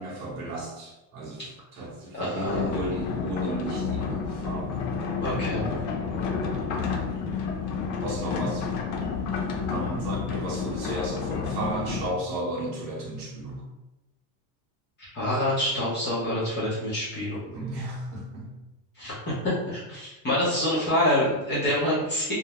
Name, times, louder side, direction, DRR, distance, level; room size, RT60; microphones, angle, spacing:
voice 1, 0.0-4.8 7.9-8.7 9.7-13.6 17.4-18.5, right 1 dB, 45° right, -4 dB, 0.8 m, -33 dB
voice 2, 2.1-2.7 5.2-5.6 15.0-17.4 19.0-22.3, left 1 dB, 25° left, -9 dB, 0.5 m, -26 dB
sound 1, 2.5-12.1, left 5 dB, 85° left, 0.6 m, -30 dB
2.4 x 2.0 x 2.9 m, 0.99 s
cardioid pair, 170°, 47 cm